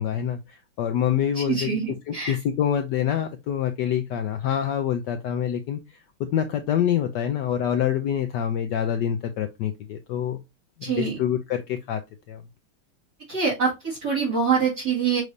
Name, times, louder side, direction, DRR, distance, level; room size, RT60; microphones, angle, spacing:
voice 1, 0.0-1.8 2.1-6.0 6.3-10.4 10.8-12.0 12.3-12.4, left 9 dB, 75° left, 1.0 m, -26 dB
voice 2, 1.3-2.4 10.8-11.2 13.3-15.2, right 6 dB, 45° right, 2.6 m, -25 dB
6.1 x 3.2 x 2.6 m
omnidirectional pair, 2.4 m